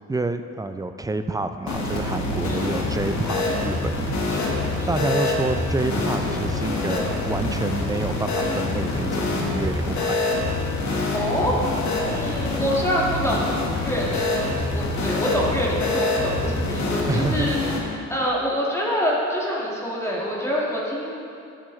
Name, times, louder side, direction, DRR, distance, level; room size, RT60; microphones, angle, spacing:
voice 1, 0.1-4.2 4.9-10.2 17.1-17.5, right 2 dB, 15° right, 9 dB, 0.3 m, -28 dB
sound 1, 1.7-17.8, left 2 dB, 70° left, 1.5 m, -25 dB
voice 2, 2.4-2.7 4.3-5.0 11.1-11.6 12.1-13.5 13.8-17.6 18.1-21.1, equal, 10° left, -5 dB, 1.7 m, -26 dB
12.5 x 7.6 x 3.1 m, 2.6 s
cardioid pair, 105°, 30 cm